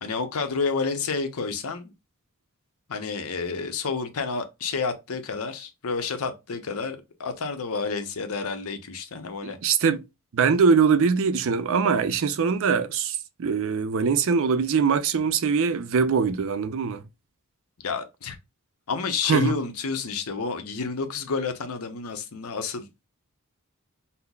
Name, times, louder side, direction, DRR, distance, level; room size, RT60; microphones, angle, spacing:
voice 1, 0.0-1.9 2.9-9.6 17.8-18.4 18.9-23.0, left 4 dB, 75° left, 0.7 m, -30 dB
voice 2, 9.4-10.0 10.3-17.0 19.3-19.6, right 5 dB, 65° right, 0.4 m, -22 dB
5.5 x 2.0 x 2.3 m
head